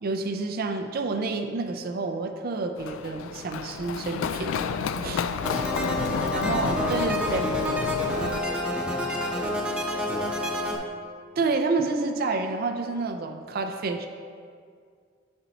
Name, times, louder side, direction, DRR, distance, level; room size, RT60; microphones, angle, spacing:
voice 1, 0.0-4.6 5.0-5.3 6.3-7.5 11.4-14.1, right 3 dB, 50° right, 5 dB, 0.4 m, -29 dB
Run, 2.8-8.4, left 6 dB, 85° left, 0.3 m, -31 dB
sound 1, 5.4-10.8, left 1 dB, 5° right, 0.7 m, -28 dB
voice 2, 5.7-7.0 7.4-10.7, equal, 30° left, 0 dB, 0.8 m, -40 dB
8.1 x 4.4 x 3.9 m, 2.2 s
head